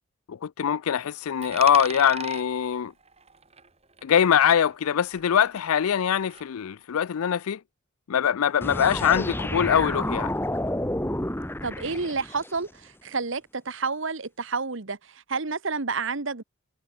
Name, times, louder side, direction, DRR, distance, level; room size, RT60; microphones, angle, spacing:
voice 1, 0.3-2.9 4.0-7.6 8.1-10.3, left 8 dB, 80° left, 0.4 m, -23 dB
Coin (dropping), 1.4-4.2 4.4-6.4, right 6 dB, 30° right, 6.6 m, -41 dB
sound 1, 8.6-12.5, left 1 dB, 10° left, 1.8 m, -30 dB
voice 2, 11.6-16.4, right 4 dB, 60° right, 1.2 m, -30 dB
head